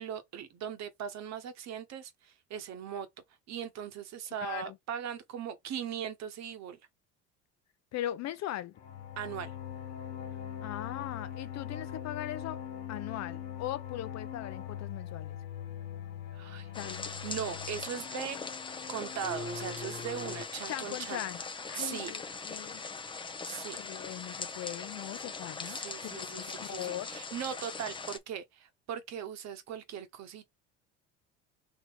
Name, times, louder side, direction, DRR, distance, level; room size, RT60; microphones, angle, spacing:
voice 1, 0.0-3.1 3.5-6.8 9.2-9.5 16.3-16.7 17.2-18.4 18.9-21.2 21.8-22.1 23.4-23.8 25.6-30.5, right 8 dB, 55° right, 1.1 m, -39 dB
voice 2, 4.4-4.8 7.9-8.7 10.6-12.6 12.9-15.4 16.7-17.1 20.7-21.4 21.7-22.8 23.8-27.1, left 13 dB, 50° left, 0.7 m, -39 dB
sound 1, 8.8-20.4, left 9 dB, 80° left, 1.7 m, -42 dB
sound 2, 16.7-28.2, left 4 dB, 15° left, 0.6 m, -41 dB
3.7 x 3.1 x 4.0 m
supercardioid pair, 85°, 34 cm